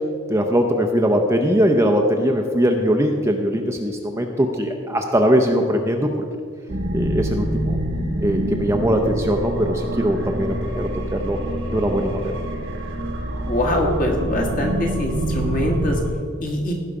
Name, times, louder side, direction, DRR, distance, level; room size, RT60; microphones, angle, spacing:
voice 1, 0.3-6.1 6.9-7.8 8.2-11.4 11.7-12.4, equal, 15° right, 4 dB, 0.6 m, -21 dB
sound 1, 6.7-16.1, right 1 dB, 60° right, 1.1 m, -26 dB
voice 2, 13.4-16.0 16.4-16.7, left 1 dB, 40° left, 1 dB, 1.6 m, -23 dB
16.0 x 5.6 x 4.8 m, 2.1 s
head